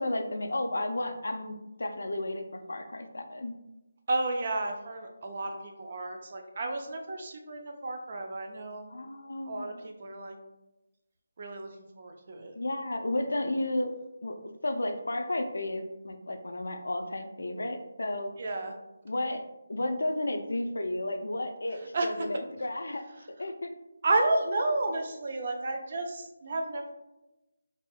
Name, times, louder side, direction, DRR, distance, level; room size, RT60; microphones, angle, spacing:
voice 1, 0.0-3.5 8.9-9.9 12.5-13.9 14.2-18.3 19.0-19.4 19.7-23.1 23.4-23.7, left 1 dB, 70° left, 6 dB, 0.4 m, -33 dB
voice 2, 4.1-8.9 9.4-10.3 11.4-12.5 18.4-18.7 21.9-22.1 24.0-26.9, right 2 dB, 45° right, 4 dB, 0.5 m, -32 dB
4.2 x 2.6 x 2.3 m, 0.98 s
figure-of-eight pair, 155°, 0 cm